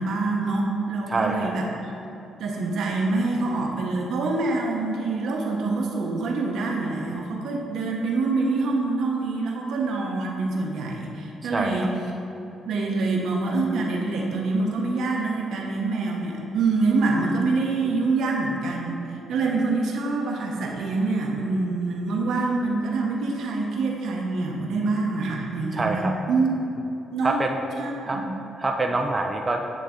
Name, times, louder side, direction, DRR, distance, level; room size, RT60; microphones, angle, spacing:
voice 1, 0.0-1.7 2.4-11.9 12.6-26.5 27.1-27.4 27.8-28.3, right 3 dB, 75° right, 0 dB, 0.8 m, -25 dB
voice 2, 1.1-1.6 11.5-11.9 25.7-26.1 27.2-27.6 28.0-29.6, right 2 dB, 25° right, 3 dB, 0.4 m, -26 dB
9.1 x 3.3 x 3.7 m, 2.8 s
cardioid pair, 90°, 0 cm